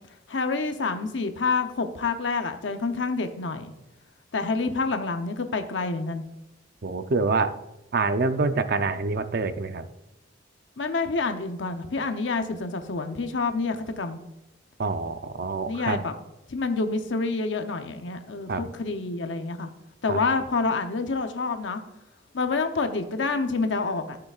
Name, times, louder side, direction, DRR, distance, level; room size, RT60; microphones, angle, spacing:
voice 1, 0.3-3.7 4.3-6.2 10.8-14.2 15.7-16.1 16.5-19.7 20.0-21.8 22.3-24.2, left 4 dB, 75° left, 7 dB, 0.7 m, -28 dB
voice 2, 6.8-7.6 7.9-9.8 14.8-16.0 18.5-18.7 20.1-20.2, right 3 dB, 55° right, 10 dB, 0.6 m, -26 dB
13.5 x 6.8 x 2.4 m, 0.95 s
head